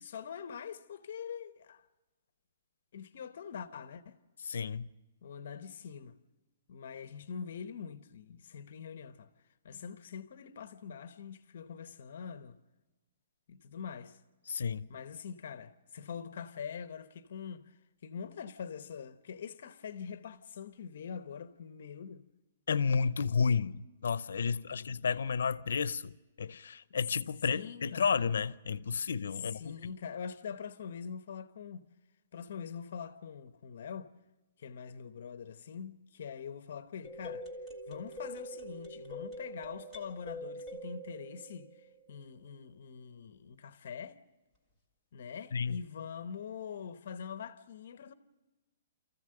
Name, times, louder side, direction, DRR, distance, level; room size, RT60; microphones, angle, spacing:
voice 1, 0.0-1.9 2.9-4.2 5.2-6.1 6.7-9.3 9.6-12.6 13.5-14.2 14.9-22.2 24.4-25.0 27.5-28.3 29.4-31.9 32.3-34.1 34.6-37.5 37.9-44.2 45.1-48.1, left 7 dB, 50° left, 0.9 m, -44 dB
voice 2, 4.4-4.9 14.5-14.9 22.7-29.7 45.5-45.8, left 6 dB, 85° left, 0.6 m, -32 dB
sound 1, 37.0-42.2, equal, 5° right, 1.8 m, -44 dB
28.0 x 14.5 x 7.8 m
hypercardioid pair, 175°, 0 cm